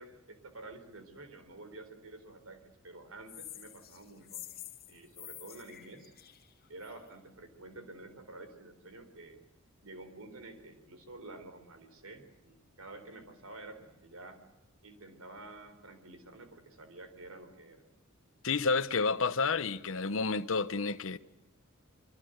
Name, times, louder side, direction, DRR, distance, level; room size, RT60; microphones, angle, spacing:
voice 1, 0.0-4.4 4.9-6.1 6.7-9.4 9.8-14.4 14.8-17.8, right 2 dB, 80° right, 4.0 m, -50 dB
sound 1, 3.3-7.1, left 13 dB, 45° left, 2.2 m, -48 dB
voice 2, 18.4-21.2, left 4 dB, 65° left, 1.0 m, -30 dB
25.0 x 24.0 x 8.0 m
head